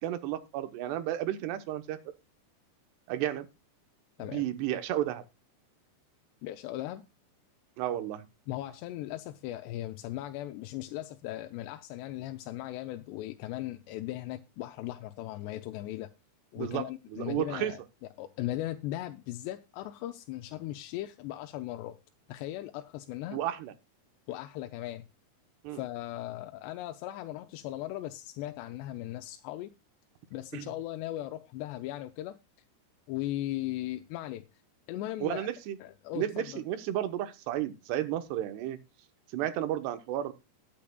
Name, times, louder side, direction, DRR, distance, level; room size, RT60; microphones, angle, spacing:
voice 1, 0.0-2.0 3.1-3.5 4.2-5.2 7.8-8.2 16.6-17.7 23.3-23.7 25.6-25.8 30.5-30.7 35.2-35.8 36.1-38.8 39.3-40.3, right 12 dB, 80° right, 3.1 m, -32 dB
voice 2, 6.4-7.0 8.5-16.1 16.5-17.8 18.2-22.0 22.3-23.4 24.3-25.0 25.7-29.7 30.3-32.4 33.1-34.4 34.9-35.5 35.8-36.6, left 14 dB, 90° left, 2.8 m, -38 dB
20.0 x 8.7 x 2.3 m
omnidirectional pair, 4.8 m